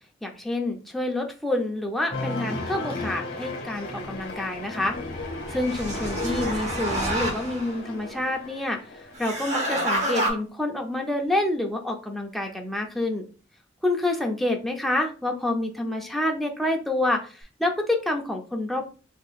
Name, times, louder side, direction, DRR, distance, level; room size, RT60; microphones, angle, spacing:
voice 1, 0.2-5.0 5.5-8.8 9.2-13.3 13.8-18.8, left 1 dB, ahead, 1 dB, 0.5 m, -27 dB
Cheering, 2.1-9.1, left 2 dB, 50° left, 1.1 m, -37 dB
sound 1, 3.7-9.4 9.8-10.4 17.4-17.5, left 2 dB, 70° left, 0.7 m, -38 dB
sound 2, 5.1-7.8 9.2-10.3, right 1 dB, 35° right, 1.1 m, -29 dB
4.2 x 2.9 x 2.4 m, 0.37 s
head